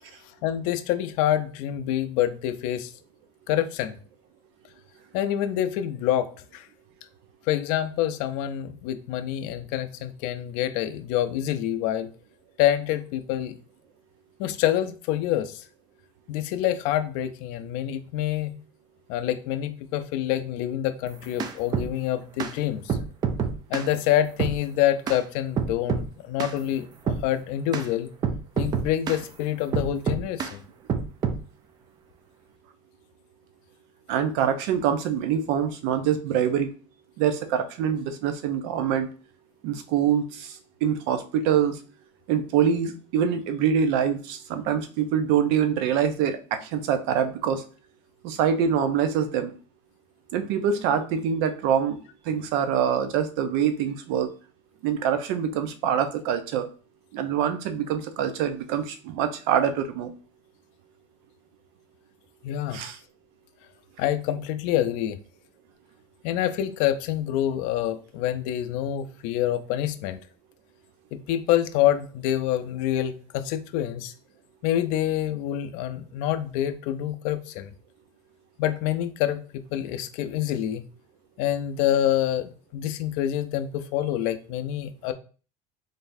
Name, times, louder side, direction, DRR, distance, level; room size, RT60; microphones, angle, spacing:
voice 1, 0.4-2.9 3.5-4.0 5.1-6.7 7.5-12.1 12.6-13.5 14.4-15.6 16.3-18.5 19.1-23.0 23.7-28.1 28.6-30.6 62.4-62.8 64.0-65.2 66.2-70.2 71.1-74.1 74.6-77.7 78.6-80.8 81.4-85.1, left 12 dB, 60° left, 10 dB, 0.5 m, -26 dB
sound 1, 21.1-21.9 22.4-22.5 22.9-23.9 24.4-24.6 25.1-25.2 25.6-26.1 26.4-26.6 27.1-27.3 27.7-27.9 28.2-29.2 29.7-30.5 30.9-31.4, right 6 dB, 25° right, 0.4 m, -27 dB
voice 2, 34.1-36.7 37.2-39.1 39.6-40.5 40.8-41.7 42.3-47.6 48.2-49.5 50.3-52.0 52.3-54.3 54.8-56.7 57.1-60.1 62.7-63.0, right 8 dB, 70° right, 9 dB, 0.6 m, -25 dB
3.9 x 3.3 x 2.6 m, 0.38 s
supercardioid pair, 140°, 15 cm